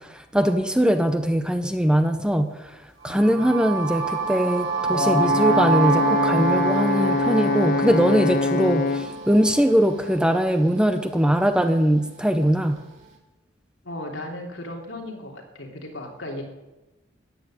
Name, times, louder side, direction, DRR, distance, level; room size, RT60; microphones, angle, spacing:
voice 1, 0.0-12.8, equal, 5° right, 7 dB, 0.7 m, -21 dB
voice 2, 3.0-3.5 13.8-16.4, left 1 dB, 65° left, 0 dB, 3.2 m, -36 dB
sound 1, 3.0-10.9, right 5 dB, 70° right, 3.3 m, -27 dB
Brass instrument, 4.9-9.2, left 4 dB, 50° left, 0.7 m, -24 dB
14.0 x 8.8 x 9.2 m, 1.0 s
head